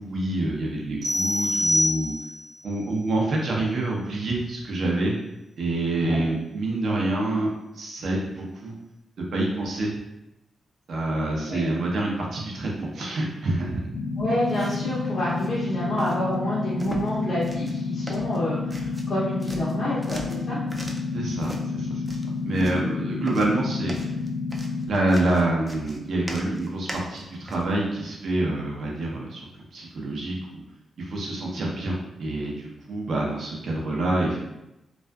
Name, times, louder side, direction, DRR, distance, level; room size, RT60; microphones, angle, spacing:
voice 1, 0.0-2.1 2.6-5.1 5.6-7.5 7.7-8.7 9.3-10.0 10.9-14.0 21.1-22.0 22.4-24.1 24.9-29.4 29.7-30.6 31.0-34.4, right 2 dB, 65° right, -2 dB, 0.6 m, -27 dB
sound 1, 1.0-2.5, left 1 dB, 85° right, 0.9 m, -25 dB
sound 2, 13.9-24.9, left 4 dB, 85° left, 0.3 m, -30 dB
voice 2, 14.2-20.6, left 1 dB, 50° left, -9 dB, 0.6 m, -28 dB
sound 3, 14.4-14.9 15.3-15.5 16.0-16.2 16.8-17.2 17.4-17.8 18.1-19.1 19.4-21.1 21.4-21.6 22.1-22.8 23.2-27.7, right 1 dB, 15° right, 0.3 m, -40 dB
2.5 x 2.4 x 2.2 m, 0.92 s
cardioid pair, 110°, 0 cm